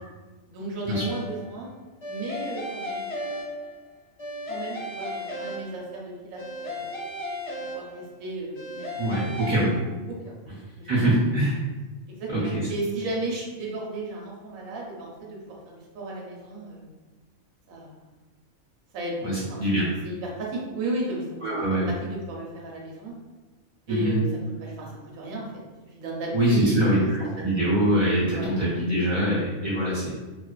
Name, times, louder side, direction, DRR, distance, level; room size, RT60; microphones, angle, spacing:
voice 1, 0.5-1.7 2.1-3.3 4.5-6.9 7.7-9.4 10.2-10.4 10.8-10.9 11.3-11.4 12.1-16.9 17.7-17.9 18.9-21.2 21.6-23.1 23.9-24.3 24.6-25.5 25.9-27.1 28.3-28.5, right 2 dB, 80° right, -2 dB, 1.0 m, -34 dB
sound 1, 0.9-1.5 2.0-3.9 4.2-6.0 6.4-8.2 8.5-9.6, left 1 dB, 55° left, 0.9 m, -35 dB
voice 2, 9.0-9.8 10.8-11.6 12.3-12.6 19.2-19.9 21.4-21.9 23.9-24.2 26.3-27.0 27.4-30.1, right 1 dB, 45° right, -9 dB, 0.8 m, -23 dB
2.5 x 2.4 x 2.2 m, 1.3 s
omnidirectional pair, 1.4 m